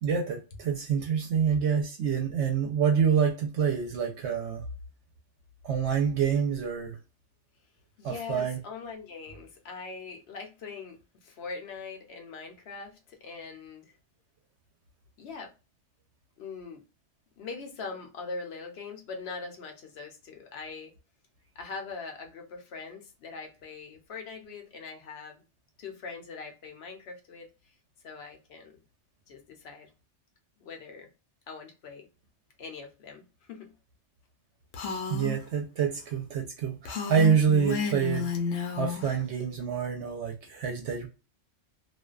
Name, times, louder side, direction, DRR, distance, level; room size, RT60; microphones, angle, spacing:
voice 1, 0.0-4.6 5.6-7.0 8.0-8.6 35.1-38.3 38.8-41.1, right 7 dB, 70° right, 0.8 m, -27 dB
voice 2, 8.0-13.9 15.2-15.5 16.4-16.8 17.4-20.9 21.6-25.4 25.8-27.5 28.0-28.8 29.3-29.9 30.6-31.1 31.5-32.1 32.6-33.7, left 4 dB, 60° left, 0.9 m, -42 dB
Female speech woman speaking, 34.7-35.4 36.8-39.1, left 5 dB, 85° left, 1.0 m, -32 dB
2.5 x 2.2 x 2.3 m
omnidirectional pair, 1.3 m